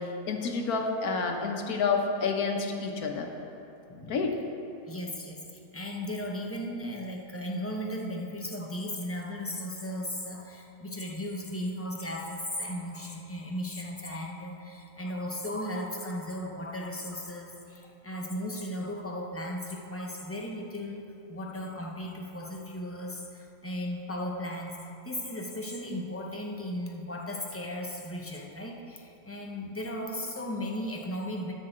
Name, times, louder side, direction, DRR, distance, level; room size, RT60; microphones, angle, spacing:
voice 1, 0.0-3.3 4.1-4.3, left 4 dB, 85° left, 3 dB, 1.5 m, -29 dB
voice 2, 3.9-4.2 4.9-21.0 21.3-24.8 25.0-31.5, left 1 dB, 15° left, 0 dB, 0.7 m, -36 dB
10.0 x 4.8 x 7.6 m, 2.9 s
omnidirectional pair, 1.6 m